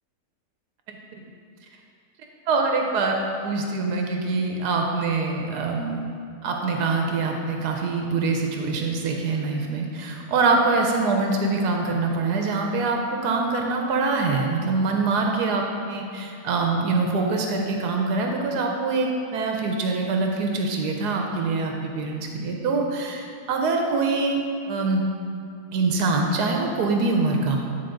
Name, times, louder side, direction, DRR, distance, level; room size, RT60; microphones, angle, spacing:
voice 1, 2.5-3.2 3.4-6.0 6.4-24.4 24.7-25.1 25.7-27.6, right 3 dB, 80° right, 1 dB, 1.2 m, -24 dB
9.5 x 4.0 x 3.8 m, 2.4 s
omnidirectional pair, 1.7 m